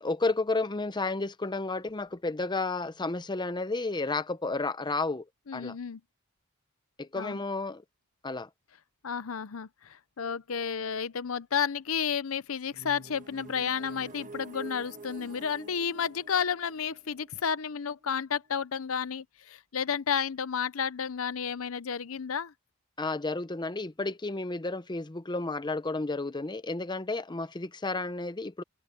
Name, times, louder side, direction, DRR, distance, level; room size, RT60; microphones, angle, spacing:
voice 1, 0.0-5.3 5.5-5.7 7.0-7.8 8.2-8.5 23.0-28.6, left 3 dB, 20° left, 0.8 m, -32 dB
voice 2, 5.5-6.0 7.2-7.4 9.0-22.5, left 7 dB, 70° left, 0.7 m, -32 dB
sound 1, 12.7-18.5, right 2 dB, 40° right, 1.4 m, -48 dB
open air
head